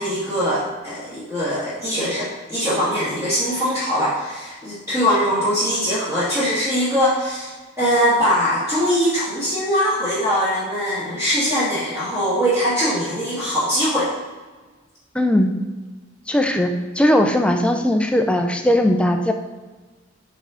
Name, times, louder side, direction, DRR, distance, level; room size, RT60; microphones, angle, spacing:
voice 1, 0.0-7.5 7.8-14.1, equal, 15° right, -11 dB, 1.4 m, -21 dB
voice 2, 15.1-15.5 16.3-16.7 16.9-19.3, left 1 dB, 5° left, 5 dB, 0.4 m, -18 dB
5.3 x 3.7 x 4.9 m, 1.3 s
head